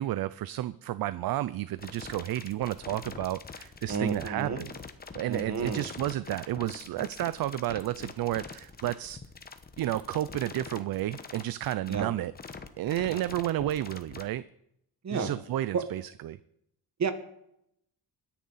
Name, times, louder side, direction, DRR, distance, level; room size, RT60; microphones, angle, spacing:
voice 1, 0.0-4.7 5.1-9.2 9.8-12.3 12.8-14.4 15.1-16.4, right 14 dB, 65° right, 16 dB, 0.5 m, -31 dB
sound 1, 1.8-14.2, left 4 dB, 25° left, 1.0 m, -44 dB
voice 2, 3.9-4.6 5.3-5.9 11.9-12.1 13.1-13.2 15.0-15.3 15.7-15.9 17.0-17.1, right 5 dB, 45° right, 9 dB, 1.6 m, -31 dB
22.0 x 10.0 x 4.1 m, 0.77 s
cardioid pair, 150°, 39 cm